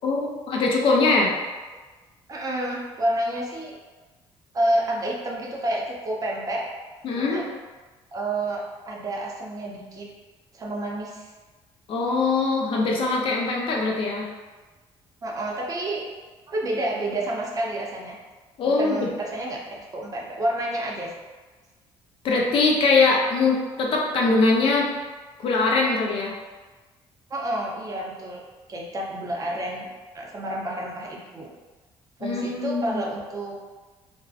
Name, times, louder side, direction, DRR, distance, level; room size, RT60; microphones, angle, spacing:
voice 1, 0.0-1.3 7.0-7.4 11.9-14.3 18.6-19.1 22.2-24.9 25.4-26.4 32.2-33.0, left 3 dB, 55° left, -1 dB, 0.4 m, -22 dB
voice 2, 2.3-3.8 4.5-6.7 7.1-7.5 8.1-10.1 10.5-11.3 15.2-16.0 16.5-18.2 18.6-21.1 27.3-28.4 28.7-29.9 30.1-31.5 32.2-33.7, right 1 dB, 35° right, -2 dB, 0.5 m, -29 dB
2.5 x 2.0 x 2.4 m, 1.3 s
cardioid pair, 100°, 11 cm